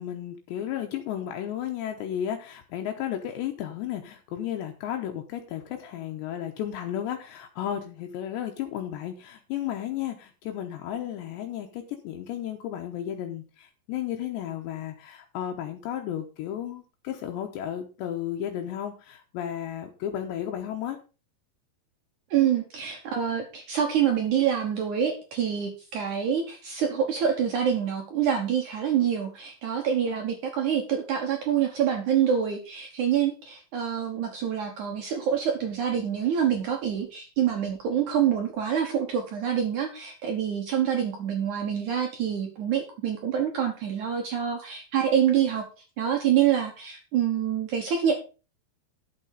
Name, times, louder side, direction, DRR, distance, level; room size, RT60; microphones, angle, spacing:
voice 1, 0.0-21.0, left 10 dB, 80° left, 4 dB, 3.0 m, -33 dB
voice 2, 22.3-45.6 46.0-48.2, right 8 dB, 75° right, 3 dB, 1.7 m, -26 dB
11.5 x 6.7 x 5.3 m, 0.33 s
omnidirectional pair, 5.4 m